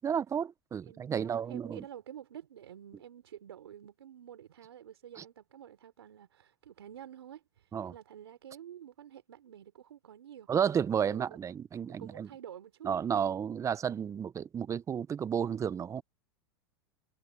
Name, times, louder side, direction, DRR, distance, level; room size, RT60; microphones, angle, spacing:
voice 1, 0.0-1.8 5.2-5.3 7.7-7.9 10.5-12.3 12.8-16.0, right 8 dB, 25° right, 1.0 m, -32 dB
voice 2, 0.9-10.5 11.0-11.2 11.8-12.9, right 10 dB, 85° right, 4.7 m, -49 dB
hypercardioid pair, 110°, 13 cm